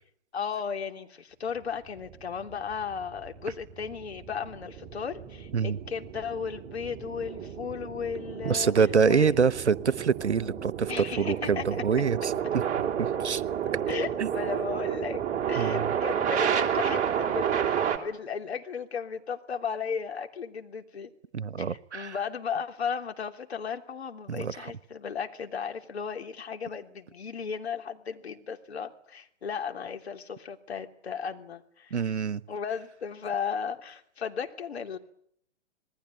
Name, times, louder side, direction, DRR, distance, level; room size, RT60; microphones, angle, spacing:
voice 1, 0.3-8.7 9.1-9.4 10.9-11.6 13.9-15.2 15.5-21.1 21.6-32.1 32.5-35.0, left 6 dB, 65° left, 3.2 m, -35 dB
sound 1, 1.9-18.0, right 9 dB, 20° right, 3.3 m, -31 dB
voice 2, 8.4-12.3 13.0-13.4 14.2-14.3 15.6-15.9 21.3-22.1 24.3-24.5 31.9-32.4, right 6 dB, 75° right, 1.2 m, -26 dB
27.0 x 20.5 x 9.3 m
figure-of-eight pair, 120°, 35 cm